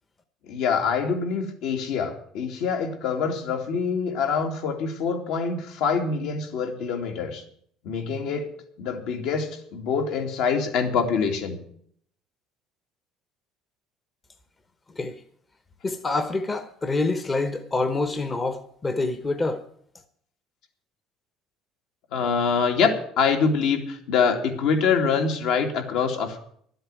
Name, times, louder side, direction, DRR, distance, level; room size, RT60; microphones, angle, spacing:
voice 1, 0.4-7.4 7.8-8.5 8.8-11.6 22.1-26.4, left 5 dB, 70° left, 3 dB, 2.5 m, -25 dB
voice 2, 15.8-19.6, left 3 dB, 20° left, 9 dB, 0.8 m, -26 dB
12.0 x 7.9 x 9.0 m, 0.62 s
cardioid pair, 160°, 0 cm